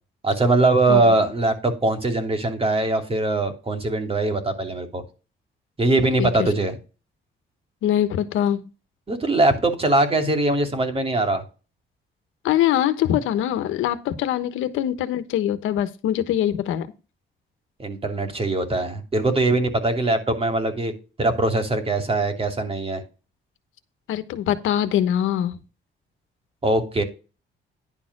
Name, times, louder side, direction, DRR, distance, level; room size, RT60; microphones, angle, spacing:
voice 1, 0.2-5.0 5.8-6.8 9.1-11.4 17.8-20.9 21.2-23.0 26.6-27.0, right 2 dB, 30° right, 2.7 m, -21 dB
voice 2, 7.8-8.7 12.4-16.9 24.1-25.6, left 11 dB, 90° left, 1.2 m, -23 dB
11.0 x 4.3 x 6.0 m
cardioid pair, 90°, 20 cm